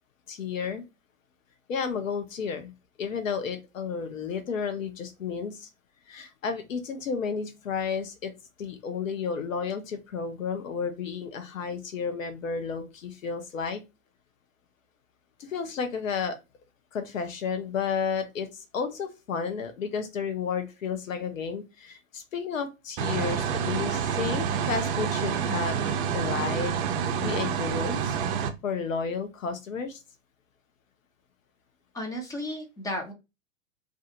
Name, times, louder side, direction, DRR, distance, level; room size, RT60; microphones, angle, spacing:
voice 1, 0.3-0.9 1.7-2.7 3.0-5.7 6.1-8.3 8.6-13.8 15.5-16.4 16.9-25.8 26.1-26.7 27.1-28.2 28.6-30.0, left 6 dB, 75° left, 7 dB, 0.7 m, -32 dB
sound 1, 23.0-28.5, right 7 dB, 40° right, 0.5 m, -28 dB
voice 2, 31.9-33.1, left 1 dB, 10° left, 2 dB, 0.5 m, -34 dB
2.4 x 2.4 x 2.7 m, 0.25 s
figure-of-eight pair, 105°, 40 cm